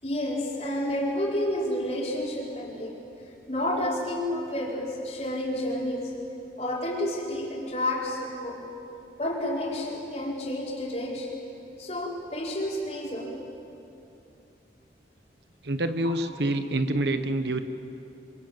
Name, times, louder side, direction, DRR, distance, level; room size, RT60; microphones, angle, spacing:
voice 1, 0.0-3.0 3.5-6.1 6.6-8.6 9.2-11.3 11.8-13.3, left 1 dB, 35° left, -3 dB, 4.8 m, -30 dB
voice 2, 15.6-17.6, right 1 dB, 75° right, 9 dB, 1.3 m, -27 dB
26.5 x 25.5 x 7.8 m, 2.7 s
head